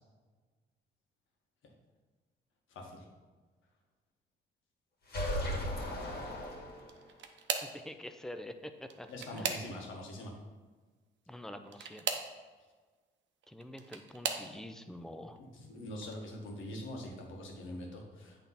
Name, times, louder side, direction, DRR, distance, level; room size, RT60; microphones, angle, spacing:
voice 1, 2.7-3.0 9.1-10.3 15.4-18.3, left 1 dB, 80° left, 0 dB, 1.6 m, -43 dB
sound 1, 5.1-7.1, left 1 dB, 50° left, 2.0 m, -36 dB
sound 2, 6.8-7.8 8.8-10.0 11.6-12.3 13.4-14.5 15.2-15.6 16.0-16.2 17.5-17.6, right 6 dB, 65° right, 0.8 m, -38 dB
voice 2, 7.6-9.8 11.3-12.1 13.5-15.4 16.2-16.3, left 1 dB, ahead, 8 dB, 0.6 m, -46 dB
8.2 x 3.6 x 5.7 m, 1.4 s
cardioid pair, 90°, 20 cm